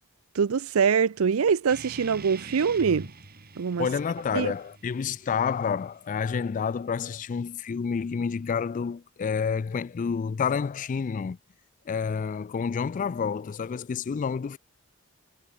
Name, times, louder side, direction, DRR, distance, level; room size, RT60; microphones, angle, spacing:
voice 1, 0.3-3.1 3.6-3.9 4.3-4.5, right 6 dB, 75° right, 0.5 m, -24 dB
sound 1, 1.7-6.7, right 3 dB, 45° right, 2.5 m, -45 dB
voice 2, 3.8-11.4 11.9-14.6, left 6 dB, 35° left, 0.3 m, -29 dB
head